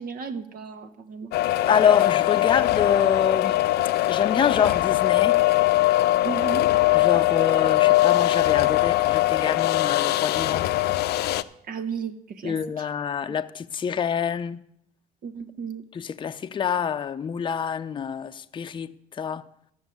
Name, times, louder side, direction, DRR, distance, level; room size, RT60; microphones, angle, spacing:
voice 1, 0.0-1.3 6.2-6.7 11.7-12.8 15.2-15.8, right 5 dB, 60° right, 1.2 m, -34 dB
sound 1, 1.3-11.4, left 16 dB, 75° left, 0.6 m, -21 dB
voice 2, 1.7-3.6 4.1-5.4 6.9-10.7 12.4-14.6 15.9-19.5, left 7 dB, 30° left, 0.6 m, -26 dB
13.0 x 6.4 x 8.4 m
cardioid pair, 110°, 17 cm